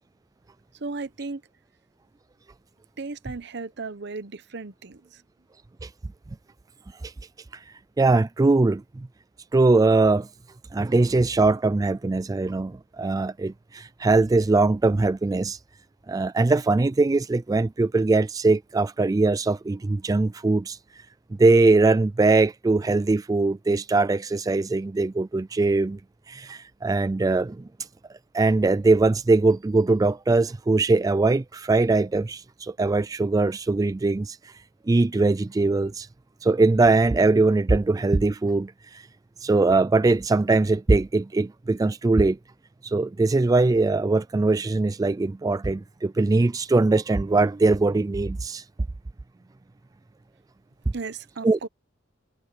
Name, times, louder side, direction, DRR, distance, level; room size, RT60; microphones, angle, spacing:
voice 1, 0.8-1.4 3.0-5.2 50.9-51.7, right 3 dB, 60° right, 0.9 m, -35 dB
voice 2, 8.0-9.1 9.5-10.3 10.7-15.6 16.1-20.8 21.4-26.0 26.3-27.6 28.3-34.4 34.9-36.1 36.4-39.0 39.4-42.4 42.8-48.6 51.4-51.6, right 3 dB, 20° right, 0.3 m, -21 dB
head